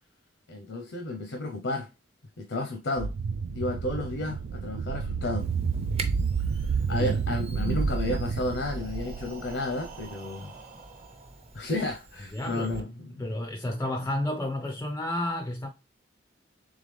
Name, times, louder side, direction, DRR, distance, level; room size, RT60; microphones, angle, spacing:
voice 1, 0.5-1.9 2.4-3.1 3.5-5.5 6.9-10.5 11.5-13.2, left 2 dB, 85° left, 0.7 m, -32 dB
sound 1, 3.0-10.1, right 5 dB, 90° right, 0.3 m, -30 dB
Camera, 5.4-12.8, right 3 dB, 35° right, 0.6 m, -45 dB
Breathing, 8.2-12.0, right 4 dB, 50° right, 1.1 m, -48 dB
voice 2, 12.3-12.8 13.2-15.7, left 1 dB, 15° left, 0.3 m, -31 dB
3.7 x 3.5 x 3.2 m
head